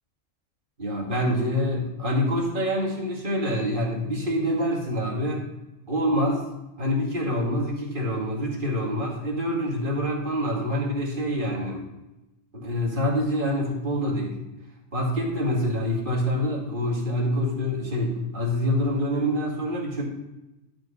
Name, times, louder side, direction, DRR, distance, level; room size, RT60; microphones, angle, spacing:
voice 1, 0.8-5.4 5.9-6.4 6.8-11.8 12.5-14.4 14.9-20.0, equal, 40° right, -2 dB, 2.2 m, -26 dB
11.5 x 5.2 x 4.3 m, 0.97 s
omnidirectional pair, 1.4 m